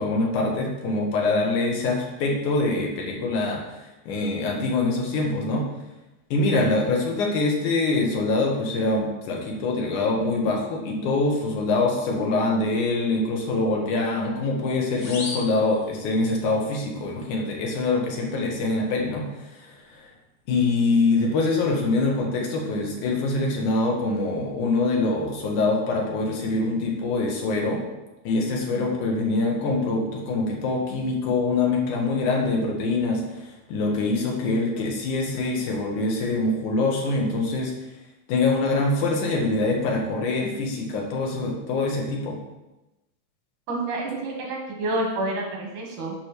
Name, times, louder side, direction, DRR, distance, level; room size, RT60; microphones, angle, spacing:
voice 1, 0.0-3.6 4.1-5.6 6.3-20.0 20.5-27.8 28.2-37.7 38.3-42.4, left 3 dB, 85° left, 0 dB, 2.8 m, -24 dB
sound 1, 15.0-16.5, left 3 dB, 55° left, 1.3 m, -37 dB
voice 2, 43.7-46.2, right 2 dB, 80° right, -1 dB, 3.1 m, -28 dB
9.4 x 3.2 x 6.7 m, 1.0 s
omnidirectional pair, 3.4 m